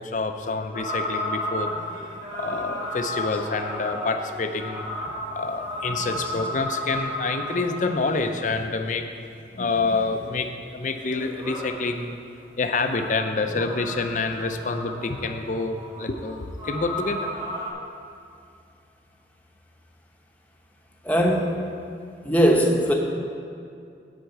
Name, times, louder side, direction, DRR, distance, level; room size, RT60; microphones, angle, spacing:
voice 1, 0.0-9.1 9.5-12.2 12.6-17.3, left 3 dB, 45° left, 6 dB, 0.5 m, -27 dB
sound 1, 0.7-8.1 10.9-11.9 12.8-17.7, left 1 dB, 25° right, 1.7 m, -33 dB
voice 2, 21.0-21.6 22.2-22.9, equal, 10° left, 0 dB, 0.9 m, -20 dB
10.0 x 4.5 x 7.9 m, 2.4 s
head